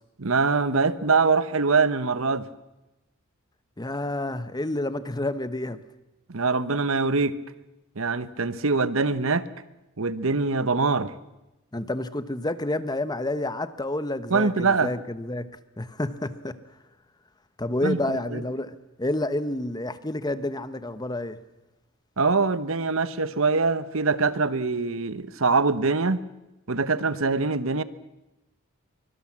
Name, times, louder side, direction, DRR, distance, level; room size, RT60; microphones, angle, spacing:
voice 1, 0.2-2.4 6.3-7.3 8.0-9.5 10.0-11.1 14.3-14.9 17.8-18.4 22.2-26.2 26.7-27.8, right 4 dB, 70° right, 15 dB, 1.1 m, -23 dB
voice 2, 3.8-5.8 11.7-15.5 15.8-16.6 17.6-21.4, left 1 dB, 20° left, 13 dB, 1.0 m, -29 dB
24.0 x 23.0 x 7.5 m, 0.99 s
head